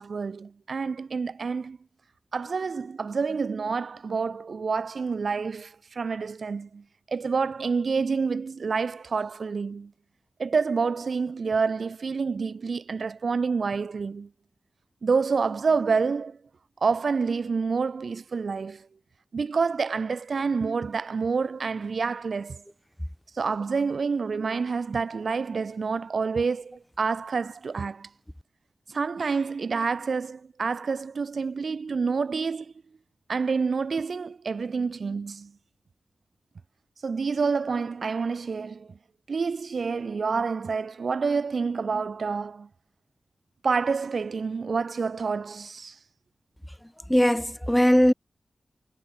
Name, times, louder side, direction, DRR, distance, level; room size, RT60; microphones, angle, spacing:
voice 1, 0.0-1.8 2.3-9.9 10.4-14.3 15.0-16.4 16.8-18.9 19.3-22.6 23.4-28.1 28.9-32.7 33.3-35.5 37.0-38.9 39.3-42.7 43.6-45.9, right 5 dB, 70° right, 1.2 m, -28 dB
voice 2, 46.8-48.1, equal, 5° left, 2.0 m, -20 dB
cardioid pair, 40°, 0 cm